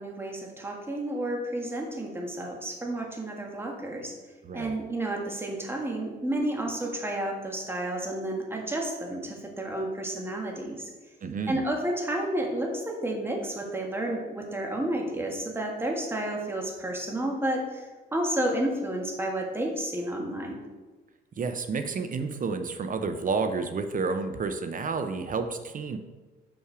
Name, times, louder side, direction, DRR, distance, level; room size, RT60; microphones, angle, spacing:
voice 1, 0.0-4.1 4.5-10.9 11.5-20.6, right 1 dB, 10° right, 1 dB, 1.6 m, -31 dB
voice 2, 4.4-4.7 11.2-11.6 21.4-26.0, right 4 dB, 40° right, 8 dB, 0.6 m, -30 dB
6.3 x 5.6 x 4.9 m, 1.2 s
cardioid pair, 90°, 20 cm